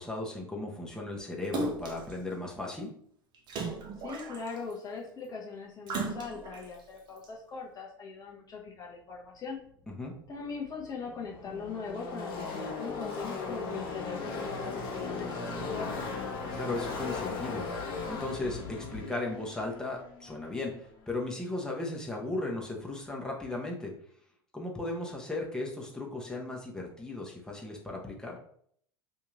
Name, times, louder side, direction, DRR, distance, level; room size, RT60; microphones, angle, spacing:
voice 1, 0.0-2.9 10.0-10.2 16.5-24.0 24.5-28.4, left 2 dB, 5° left, -1 dB, 0.9 m, -36 dB
Splash splatter, 1.5-2.1 3.5-4.7 5.9-6.6 7.2-7.3, right 3 dB, 40° right, 0.7 m, -35 dB
voice 2, 4.0-9.6 10.3-16.0, left 5 dB, 30° left, -2 dB, 0.8 m, -40 dB
Car passing by / Race car auto racing, 10.3-10.4 10.5-21.1, left 4 dB, 45° left, 1.2 m, -37 dB
2.9 x 2.7 x 3.6 m, 0.63 s
figure-of-eight pair, 80°, 12 cm